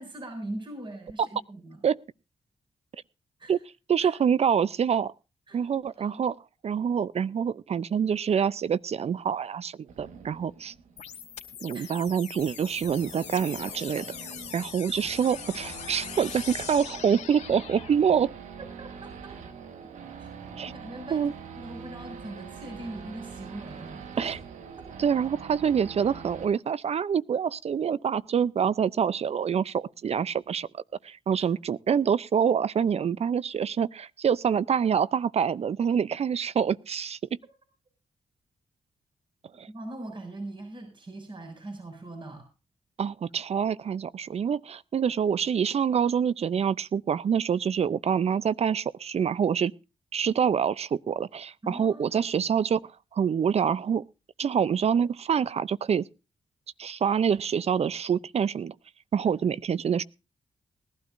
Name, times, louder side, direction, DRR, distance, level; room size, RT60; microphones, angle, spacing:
voice 1, 0.0-1.8 3.4-3.6 4.0-4.1 5.5-5.6 6.0-6.2 11.7-11.9 18.6-19.6 20.2-24.4 24.8-24.9 31.4-31.5 39.7-42.5 51.6-52.3 59.2-59.3, right 1 dB, 40° right, 6.6 m, -41 dB
voice 2, 3.9-5.1 5.5-6.4 6.6-10.7 11.6-14.1 14.5-18.3 20.6-20.7 21.1-21.3 24.2-24.4 25.0-37.2 39.6-39.7 43.0-49.7 50.1-52.8 53.1-54.0 54.4-56.1 56.8-58.7 59.1-60.0, right 7 dB, 60° right, 0.6 m, -26 dB
Race car auto racing / Idling / Accelerating revving vroom, 9.9-26.5, right 6 dB, 85° right, 1.5 m, -44 dB
sound 1, 11.0-18.0, left 8 dB, 80° left, 2.3 m, -41 dB
20.5 x 12.0 x 2.6 m
cardioid pair, 55°, 12 cm